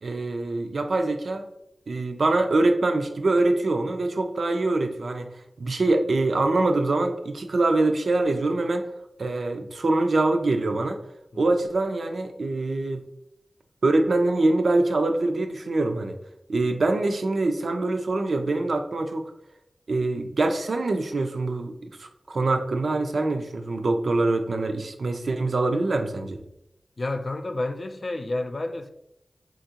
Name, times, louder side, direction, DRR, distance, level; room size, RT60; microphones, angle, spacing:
voice 1, 0.0-1.5 1.9-8.8 9.2-11.0 11.4-13.0 13.8-16.2 16.5-19.3 19.9-26.4, right 2 dB, 80° right, 0.3 m, -24 dB
voice 2, 27.0-28.9, left 2 dB, 55° left, 0.3 m, -30 dB
3.6 x 2.4 x 2.7 m
cardioid pair, 45°, 0 cm